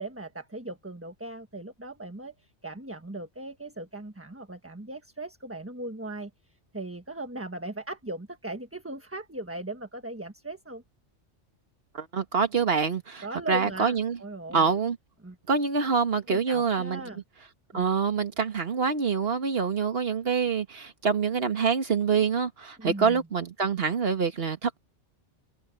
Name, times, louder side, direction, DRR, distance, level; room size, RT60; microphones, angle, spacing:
voice 1, 0.0-2.3 2.6-6.3 6.7-10.8 13.2-14.7 15.2-15.4 16.3-17.2 17.7-17.8 22.8-23.2, right 2 dB, 10° right, 1.3 m, -38 dB
voice 2, 11.9-14.2 14.5-15.0 15.5-17.0 17.7-24.8, right 5 dB, 55° right, 1.8 m, -26 dB
omnidirectional pair, 1.2 m